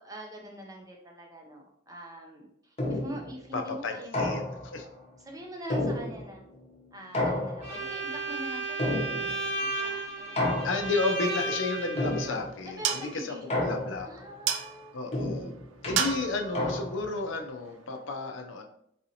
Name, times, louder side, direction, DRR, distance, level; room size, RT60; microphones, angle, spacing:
voice 1, 0.0-4.3 4.8-6.4 6.9-10.7 12.6-13.7 14.0-15.0 16.0-16.1, equal, 20° right, 1 dB, 0.5 m, -44 dB
sound 1, 2.8-3.3 4.1-4.8 5.7-6.5 7.1-7.9 8.8-9.5 10.4-11.1 12.0-12.6 13.5-14.2 15.1-17.2, left 1 dB, 30° left, 0.8 m, -31 dB
voice 2, 3.5-4.4 4.7-4.9 10.6-14.1 14.9-15.5 15.8-18.6, left 3 dB, 75° left, 4 dB, 0.5 m, -32 dB
Bowed string instrument, 7.6-12.3, right 2 dB, 35° right, 1.1 m, -33 dB
sound 2, 11.7-18.1, right 8 dB, 80° right, 0.3 m, -36 dB
4.0 x 2.6 x 2.7 m, 0.71 s
head